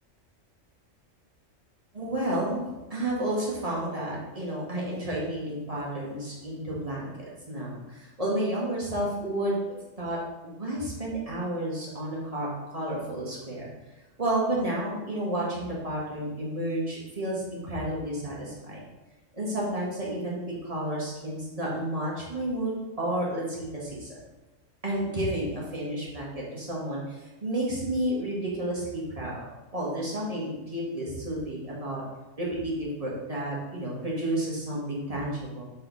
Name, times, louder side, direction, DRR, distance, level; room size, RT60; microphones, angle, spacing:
voice 1, 1.9-2.6 2.9-9.6 10.0-10.2 10.4-13.7 14.2-18.8 19.3-24.1 24.8-29.5 29.7-32.0 32.4-35.6, right 1 dB, 30° right, -5 dB, 1.8 m, -31 dB
7.0 x 4.2 x 4.1 m, 1.0 s
omnidirectional pair, 1.3 m